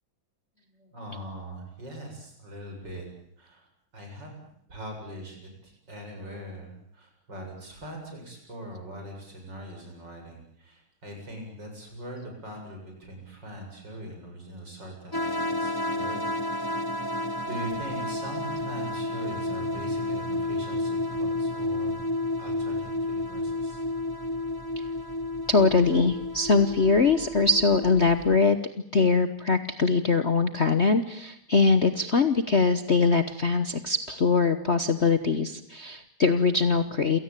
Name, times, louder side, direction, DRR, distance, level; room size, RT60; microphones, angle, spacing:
voice 1, 0.5-3.1 3.4-3.7 3.9-4.3 4.7-16.4 17.5-22.0 22.4-23.8, right 1 dB, 55° right, 2 dB, 8.2 m, -41 dB
sound 1, 15.1-28.4, left 1 dB, 15° left, 1.2 m, -31 dB
voice 2, 25.5-28.6 28.9-37.2, left 4 dB, 40° left, 10 dB, 1.1 m, -22 dB
28.5 x 17.5 x 9.1 m, 0.71 s
omnidirectional pair, 2.3 m